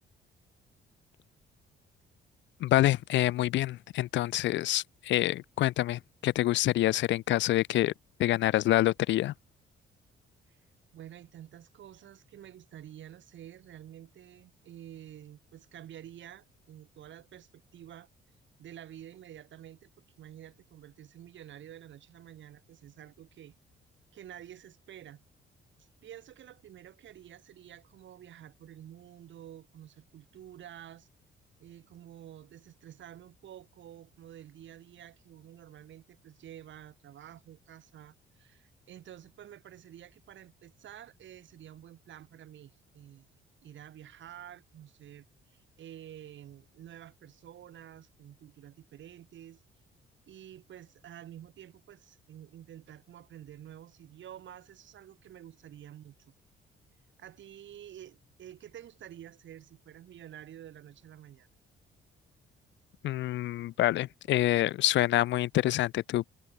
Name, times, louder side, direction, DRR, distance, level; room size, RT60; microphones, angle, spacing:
voice 1, 2.6-7.9 8.2-9.3 63.0-66.3, left 15 dB, 70° left, 0.4 m, -27 dB
voice 2, 10.9-18.1 18.6-19.9 20.2-23.5 24.1-25.2 25.8-31.1 31.6-43.3 43.6-49.6 50.3-56.4 57.2-61.5, right 11 dB, 70° right, 6.0 m, -50 dB
cardioid pair, 90°, 20 cm